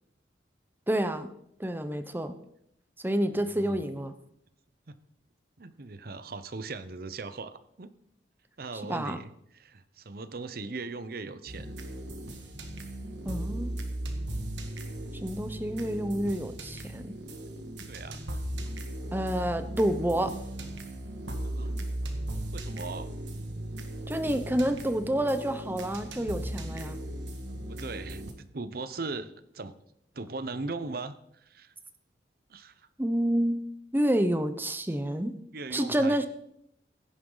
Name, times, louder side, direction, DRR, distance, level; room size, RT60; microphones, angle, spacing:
voice 1, 0.9-1.3 1.6-2.3 3.0-4.1 8.9-9.2 13.3-13.7 15.2-17.1 19.1-20.3 24.1-27.0 33.0-33.6 33.9-35.3 35.7-36.3, right 1 dB, 10° right, 10 dB, 0.8 m, -28 dB
voice 2, 5.6-7.9 8.6-11.7 17.9-18.4 21.4-21.8 22.5-23.1 27.7-28.2 28.5-29.7 30.1-31.7 32.5-32.9 35.5-36.3, right 3 dB, 55° right, 13 dB, 0.8 m, -39 dB
sound 1, 11.5-28.3, right 1 dB, 80° right, 1.8 m, -37 dB
16.0 x 10.0 x 4.0 m, 0.74 s
head